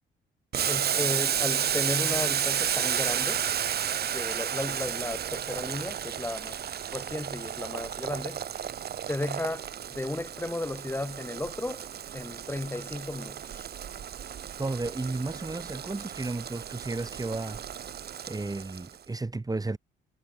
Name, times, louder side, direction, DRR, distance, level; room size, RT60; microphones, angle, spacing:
Boiling, 0.5-19.0, right 9 dB, 55° right, 1.3 m, -32 dB
voice 1, 0.7-3.4 4.1-6.6 6.9-8.4 9.1-11.9 12.1-13.7, left 2 dB, 10° left, 2.2 m, -34 dB
voice 2, 14.6-17.6 18.3-19.8, right 3 dB, 20° right, 3.2 m, -33 dB
cardioid pair, 90°, 20 cm